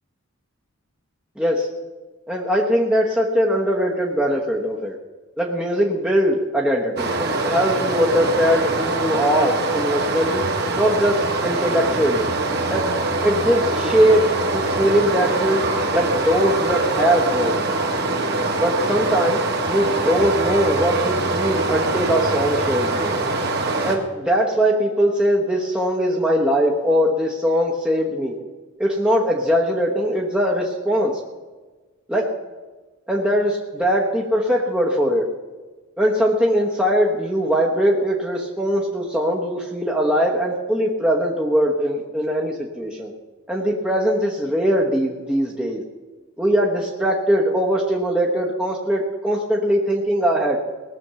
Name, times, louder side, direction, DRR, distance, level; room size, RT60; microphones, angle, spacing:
voice 1, 1.4-1.7 2.3-4.9 5.4-10.5 10.7-12.3 12.7-12.9 13.2-17.6 18.6-23.1 23.8-28.3 28.8-31.2 32.1-32.3 33.1-35.3 36.0-43.1 43.5-45.8 46.4-50.6, equal, 5° right, -3 dB, 1.0 m, -21 dB
Stream, 7.0-24.0, right 2 dB, 45° right, 1.5 m, -23 dB
18.5 x 7.0 x 6.9 m, 1.3 s
head